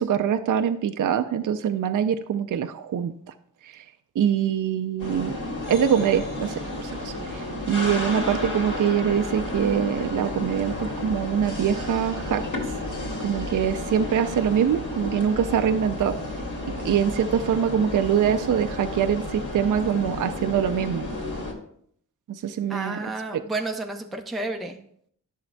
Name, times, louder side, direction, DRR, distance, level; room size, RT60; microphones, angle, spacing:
voice 1, 0.0-3.1 3.6-3.8 4.2-5.4 5.7-12.4 13.2-16.2 16.8-21.0 22.3-23.0 23.3-23.4, right 8 dB, 60° right, 8 dB, 0.5 m, -24 dB
sound 1, 5.0-21.5, left 1 dB, 55° left, 2.3 m, -32 dB
voice 2, 22.7-24.8, right 2 dB, ahead, 3 dB, 0.6 m, -31 dB
10.5 x 6.5 x 2.2 m, 0.65 s
wide cardioid pair, 90°, 36 cm